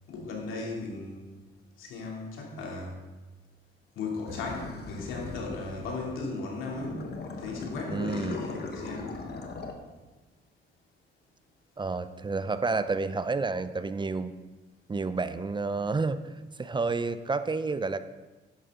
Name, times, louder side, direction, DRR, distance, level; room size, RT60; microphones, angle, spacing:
voice 1, 0.1-1.3 1.8-3.0 4.0-7.1 7.4-9.1, left 3 dB, 90° left, -2 dB, 2.9 m, -36 dB
sound 1, 4.3-6.2 6.6-9.7, left 4 dB, 55° left, 1.5 m, -39 dB
voice 2, 7.9-8.4 11.8-14.4 14.9-16.2 16.6-18.0, right 4 dB, 25° right, 12 dB, 0.6 m, -30 dB
11.5 x 10.5 x 3.8 m, 1.2 s
cardioid pair, 90°, 20 cm